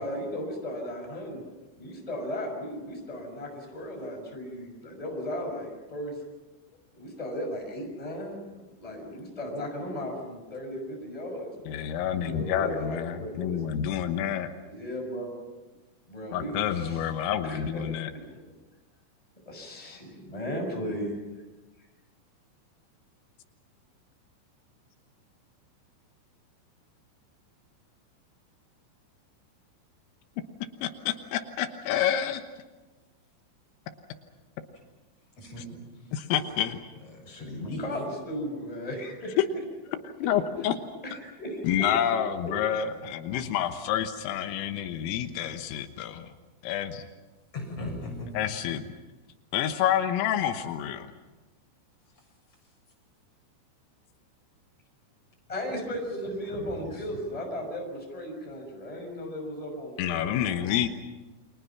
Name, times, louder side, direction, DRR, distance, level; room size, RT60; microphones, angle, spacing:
voice 1, 0.0-1.4 1.8-6.1 6.9-8.4 8.8-11.5 12.2-13.6 14.7-15.3 16.1-17.1 17.4-17.8 19.5-21.2 37.8-39.4 41.0-41.9 55.5-60.6, equal, 5° left, 1 dB, 5.8 m, -36 dB
voice 2, 11.7-14.5 16.3-18.1 30.8-32.4 36.1-36.8 40.2-40.8 41.6-46.3 46.6-47.1 48.4-48.8 49.5-51.1 60.0-60.9, left 10 dB, 85° left, 7 dB, 3.8 m, -28 dB
voice 3, 37.1-37.8 47.5-48.3 56.5-57.2, left 2 dB, 30° left, 0 dB, 8.1 m, -38 dB
29.5 x 24.5 x 6.0 m, 1.2 s
omnidirectional pair, 5.8 m